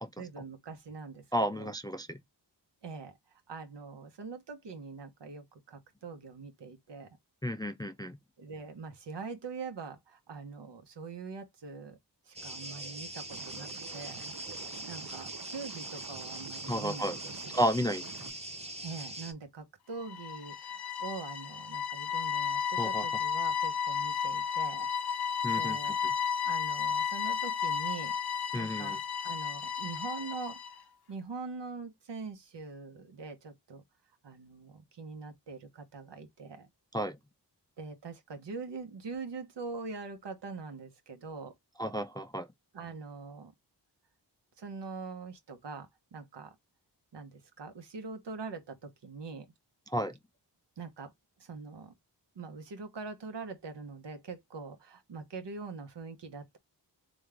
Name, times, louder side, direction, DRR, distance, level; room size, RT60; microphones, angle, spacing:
voice 1, 0.2-1.7 2.8-3.2 3.5-7.2 8.4-12.0 12.2-17.6 18.8-26.0 26.4-30.6 31.1-33.8 34.2-36.7 37.8-41.5 42.7-43.5 44.6-46.6 47.1-49.5 50.8-51.1 51.4-51.9 52.3-56.6, right 4 dB, 75° right, 1.2 m, -43 dB
voice 2, 1.3-2.2 7.4-8.2 16.7-17.2 17.5-18.0 22.8-23.0 25.4-25.9 28.5-29.0 36.9-37.2 41.8-42.5 49.9-50.1, equal, 10° left, 0.3 m, -32 dB
sound 1, 12.3-19.3, right 1 dB, 15° right, 1.0 m, -42 dB
Liquid, 13.3-18.3, right 7 dB, 50° right, 0.6 m, -49 dB
sound 2, 20.0-30.8, left 7 dB, 60° left, 0.6 m, -33 dB
3.5 x 3.1 x 3.5 m
wide cardioid pair, 80°, 43 cm